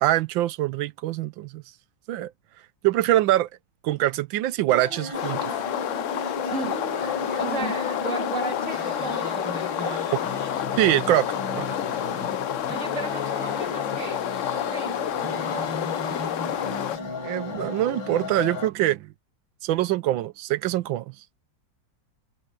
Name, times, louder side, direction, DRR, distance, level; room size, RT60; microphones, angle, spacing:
voice 1, 0.0-1.6 2.1-2.3 2.8-3.5 3.8-5.5 10.8-11.3 11.5-11.7 17.2-19.1 19.6-21.0, right 14 dB, 90° right, 1.4 m, -24 dB
sound 1, 4.7-18.7, left 2 dB, 85° left, 5.6 m, -35 dB
sound 2, 5.1-17.0, left 10 dB, 65° left, 0.8 m, -29 dB
voice 2, 6.5-6.9 7.4-10.1 12.7-15.7, right 3 dB, 40° right, 3.3 m, -35 dB
omnidirectional pair, 2.0 m